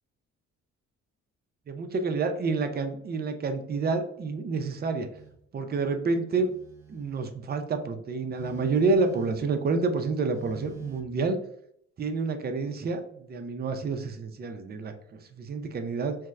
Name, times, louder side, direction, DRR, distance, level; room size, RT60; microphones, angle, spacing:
voice 1, 1.7-5.1 5.5-6.5 6.9-11.4 12.0-16.2, right 4 dB, 35° right, 6 dB, 0.5 m, -29 dB
Telephone, 5.1-5.4 6.3-7.4 8.3-9.6 10.3-11.0, right 8 dB, 10° right, 0.9 m, -45 dB
4.3 x 2.0 x 2.3 m, 0.70 s
cardioid pair, 90°, 30 cm